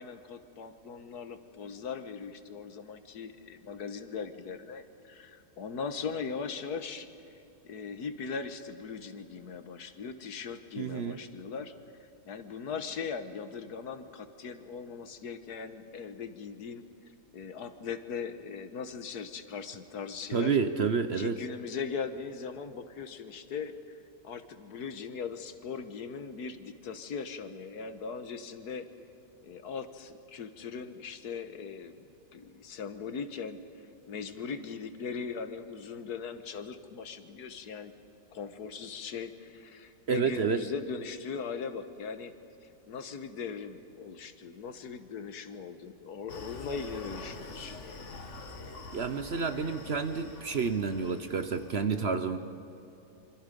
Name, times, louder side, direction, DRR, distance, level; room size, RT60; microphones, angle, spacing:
voice 1, 0.0-7.4 7.6-11.7 12.3-16.8 17.3-20.6 21.1-23.8 24.2-28.9 29.4-32.0 32.3-37.9 38.3-42.3 42.6-48.1, left 5 dB, 75° left, 10 dB, 1.7 m, -39 dB
voice 2, 10.8-11.2 20.3-21.4 40.1-40.6 48.9-52.4, right 5 dB, 50° right, 9 dB, 1.0 m, -29 dB
Screaming, 46.3-51.8, left 3 dB, 50° left, 1.7 m, -45 dB
27.0 x 25.0 x 5.3 m, 2.9 s
omnidirectional pair, 1.7 m